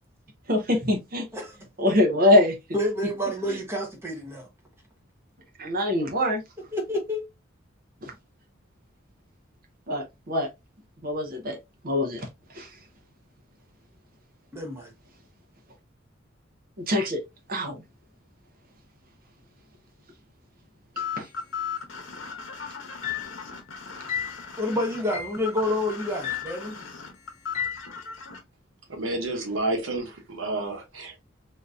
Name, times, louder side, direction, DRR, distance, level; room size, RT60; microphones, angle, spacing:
voice 1, 0.5-1.2 1.8-2.5 5.6-6.4 9.9-10.5 11.0-11.6 11.8-12.3 12.5-12.7 16.9-17.2 17.5-17.8 21.2-21.3, left 1 dB, 45° right, 0.8 m, -23 dB
voice 2, 2.7-4.5 6.7-7.3 14.5-14.9 24.6-26.8, left 1 dB, 15° right, 0.8 m, -29 dB
sound 1, 21.0-28.4, left 6 dB, 75° left, 0.9 m, -37 dB
sound 2, 23.0-23.4 24.1-24.4 25.1-25.4 26.2-26.6 27.5-27.9, left 9 dB, 35° left, 0.5 m, -32 dB
voice 3, 28.9-31.2, right 2 dB, 90° right, 1.1 m, -30 dB
3.7 x 2.7 x 2.4 m
head